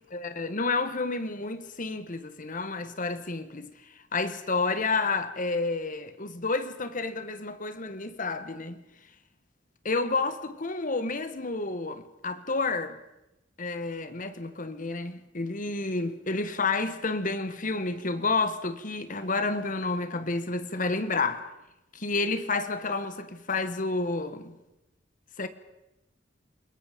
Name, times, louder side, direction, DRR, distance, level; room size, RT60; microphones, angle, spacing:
voice 1, 0.0-3.7 4.1-8.8 9.8-13.0 13.6-21.5 21.9-24.6 25.4-25.5, left 3 dB, 45° left, 1.5 m, -30 dB
29.0 x 21.5 x 5.2 m
head